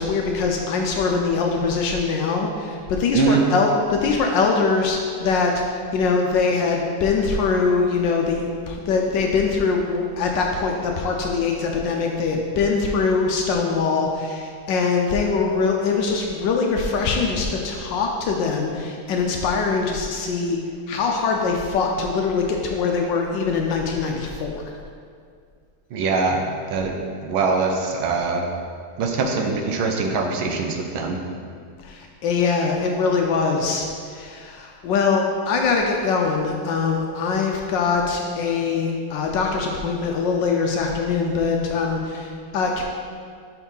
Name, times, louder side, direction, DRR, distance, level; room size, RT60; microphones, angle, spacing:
voice 1, 0.0-20.6 20.9-24.6 31.8-42.8, left 4 dB, 75° left, 1 dB, 1.1 m, -22 dB
voice 2, 25.9-26.4 26.7-27.0 27.2-28.4 29.0-31.2, right 4 dB, 75° right, 3 dB, 1.5 m, -22 dB
5.3 x 4.7 x 5.4 m, 2.2 s
omnidirectional pair, 2.3 m